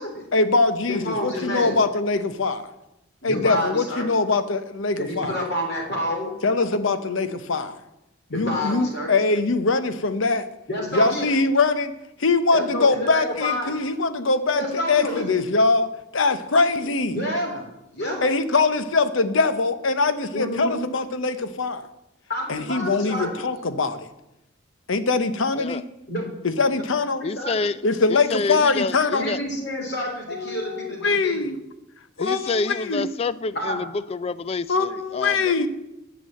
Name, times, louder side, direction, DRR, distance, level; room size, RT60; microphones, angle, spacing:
voice 1, 0.3-2.7 3.2-5.3 6.4-7.8 8.3-10.5 10.9-11.9 12.2-17.2 18.2-21.9 22.5-24.1 24.9-25.8 26.4-27.2 27.8-29.3 30.3-31.6 32.2-33.1 34.7-35.7, left 3 dB, 70° left, 11 dB, 0.8 m, -22 dB
voice 2, 0.9-1.8 3.2-4.2 5.0-6.3 8.3-9.1 10.7-11.3 12.5-13.8 14.5-15.2 17.1-17.6 17.9-18.2 20.3-20.8 22.3-23.4 26.1-26.2 27.2-27.6 29.2-31.5 33.5-33.8, equal, 50° left, 0 dB, 3.3 m, -28 dB
voice 3, 27.2-27.8 28.1-29.4 32.2-35.7, left 4 dB, 30° left, 16 dB, 0.3 m, -28 dB
11.0 x 6.2 x 7.6 m, 0.91 s
head